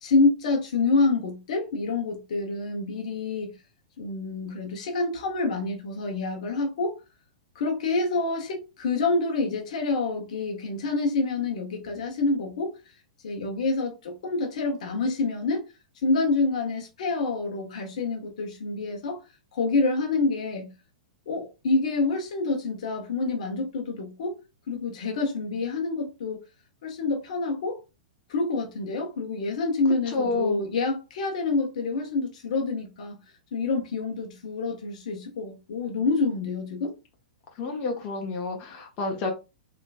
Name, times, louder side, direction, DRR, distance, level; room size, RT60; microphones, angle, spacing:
voice 1, 0.0-3.5 4.0-7.0 7.5-12.8 13.2-15.6 16.0-19.2 19.5-20.7 21.3-24.4 24.7-26.4 26.8-27.8 28.3-33.2 33.5-36.9, left 3 dB, 65° left, 1.2 m, -27 dB
voice 2, 30.1-30.6 37.6-39.3, left 3 dB, 40° left, 1.1 m, -29 dB
3.4 x 2.9 x 2.5 m
hypercardioid pair, 110°, 4 cm